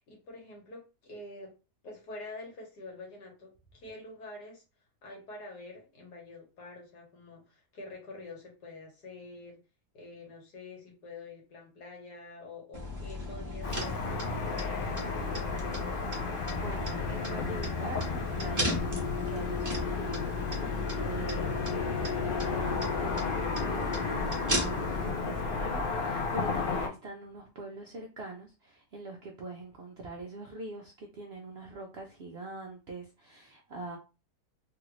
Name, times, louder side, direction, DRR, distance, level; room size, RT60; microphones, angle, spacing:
voice 1, 0.0-1.5 1.8-4.6 5.0-9.6 9.9-15.4, left 2 dB, 90° left, -1 dB, 1.8 m, -47 dB
sound 1, 12.7-25.1, left 1 dB, 20° right, 0.5 m, -36 dB
Car passing by / Traffic noise roadway noise, 13.6-26.9, left 4 dB, 70° left, 0.5 m, -33 dB
voice 2, 16.5-18.8 19.3-20.6 20.9-21.8 22.3-34.0, right 2 dB, 70° right, 1 dB, 0.6 m, -43 dB
3.3 x 2.4 x 3.0 m, 0.31 s
omnidirectional pair, 1.7 m